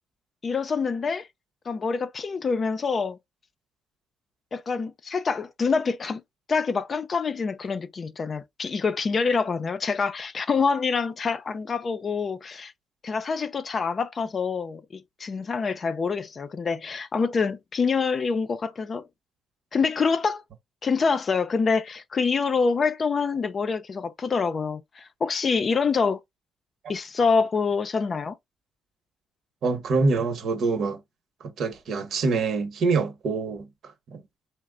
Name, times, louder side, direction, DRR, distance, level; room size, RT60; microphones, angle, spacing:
voice 1, 0.4-1.3 1.7-3.2 4.5-6.2 6.5-12.7 13.0-19.1 19.7-20.4 20.8-26.2 26.9-28.4, left 5 dB, 40° left, 0.4 m, -26 dB
voice 2, 29.6-31.0 31.4-34.2, right 4 dB, 65° right, 0.9 m, -26 dB
3.1 x 2.0 x 3.7 m
cardioid pair, 90°, 0 cm